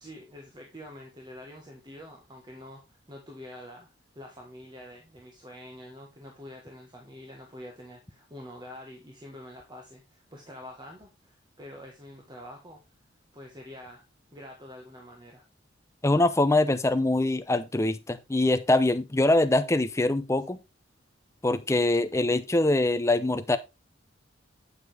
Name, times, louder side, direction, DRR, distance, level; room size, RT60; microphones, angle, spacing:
voice 1, 0.0-3.9 4.1-12.8 13.3-14.0 14.3-15.4, left 1 dB, 25° right, 1.4 m, -46 dB
voice 2, 16.0-20.6 21.4-23.6, left 2 dB, 15° left, 0.6 m, -23 dB
8.2 x 7.3 x 3.4 m
head